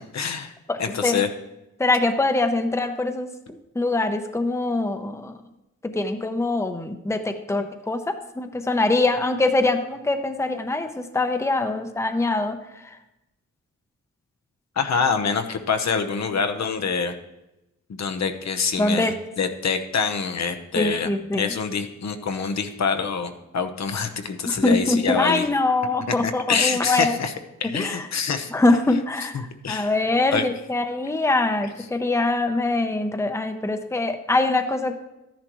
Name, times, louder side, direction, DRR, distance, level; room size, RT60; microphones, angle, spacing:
voice 1, 0.1-0.5 0.8-1.3 14.8-17.1 17.9-25.4 26.2-27.3 27.6-28.5 29.3-29.9 30.3-30.4, left 5 dB, 65° left, 6 dB, 1.0 m, -25 dB
voice 2, 0.7-1.2 1.8-5.4 5.8-13.0 18.8-19.1 20.8-21.5 24.4-27.2 27.6-28.1 28.5-34.9, left 2 dB, 10° left, 6 dB, 0.8 m, -23 dB
13.0 x 10.5 x 3.1 m, 0.95 s
wide cardioid pair, 105°, 30 cm